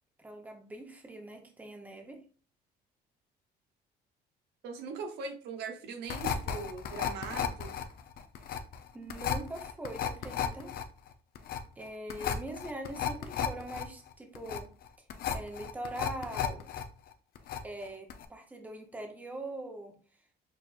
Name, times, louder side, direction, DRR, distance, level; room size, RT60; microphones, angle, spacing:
voice 1, 0.2-2.2 8.9-10.8 11.8-14.7 15.3-16.7 17.6-19.9, right 1 dB, 10° right, 3 dB, 0.8 m, -42 dB
voice 2, 4.6-7.8, right 5 dB, 80° right, 4 dB, 0.9 m, -40 dB
sound 1, 6.1-16.8 17.1-17.8 18.1-18.2, left 9 dB, 65° left, 0.6 m, -34 dB
6.0 x 2.5 x 2.5 m, 0.39 s
cardioid pair, 110°, 17 cm